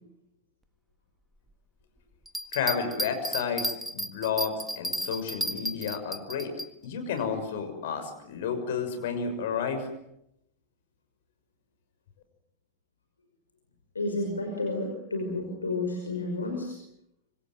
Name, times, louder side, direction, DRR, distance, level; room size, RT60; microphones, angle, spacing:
Bell, 2.3-6.7 7.2-7.3, equal, 5° right, 1.8 m, -33 dB
voice 1, 2.5-6.5 6.8-9.9, left 6 dB, 55° left, 7 dB, 6.3 m, -31 dB
voice 2, 14.0-16.8, left 2 dB, 75° left, 3 dB, 5.4 m, -31 dB
26.5 x 26.0 x 7.8 m, 0.81 s
figure-of-eight pair, 90°, 0 cm